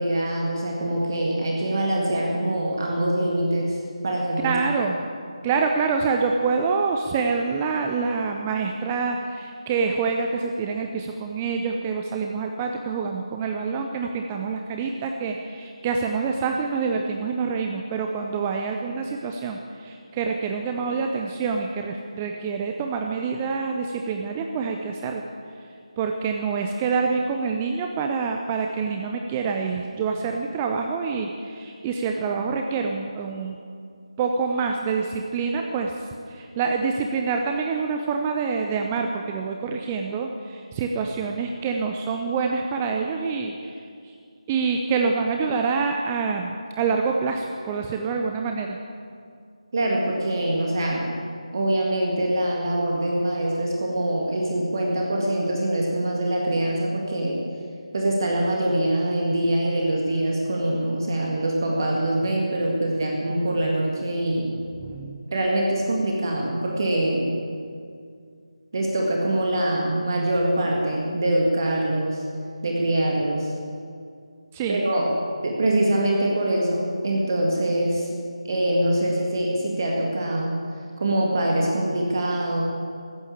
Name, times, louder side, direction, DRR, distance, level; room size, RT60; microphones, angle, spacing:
voice 1, 0.0-4.5 49.7-51.1 51.5-57.4 57.9-64.5 65.3-67.4 68.7-72.2 72.6-73.5 74.7-75.2 75.4-78.1 78.4-80.6 81.0-82.6, right 1 dB, 35° right, -1 dB, 1.9 m, -24 dB
voice 2, 4.4-5.0 5.4-25.2 26.0-33.6 34.2-44.1 44.5-48.8 64.7-65.2 74.5-74.8, right 5 dB, 15° right, 3 dB, 0.5 m, -26 dB
14.5 x 9.8 x 8.6 m, 2.3 s
figure-of-eight pair, 160°, 3 cm